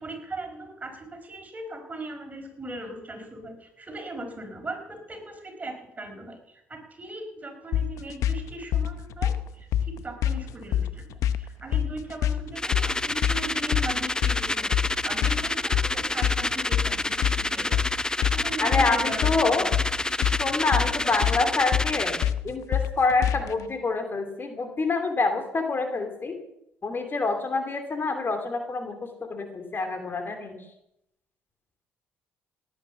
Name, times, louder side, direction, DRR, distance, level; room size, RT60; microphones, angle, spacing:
voice 1, 0.0-14.8 15.0-17.8 18.3-19.7 20.8-20.9, right 2 dB, 25° right, 4 dB, 4.7 m, -39 dB
sound 1, 7.7-23.6, left 10 dB, 70° left, 0.8 m, -27 dB
sound 2, 12.6-22.3, left 2 dB, 15° left, 0.7 m, -28 dB
voice 2, 18.6-19.7 20.4-26.4 26.8-29.0 29.3-30.6, left 3 dB, 40° left, 6 dB, 2.9 m, -27 dB
17.5 x 9.8 x 7.1 m, 0.81 s
hypercardioid pair, 55°, 6 cm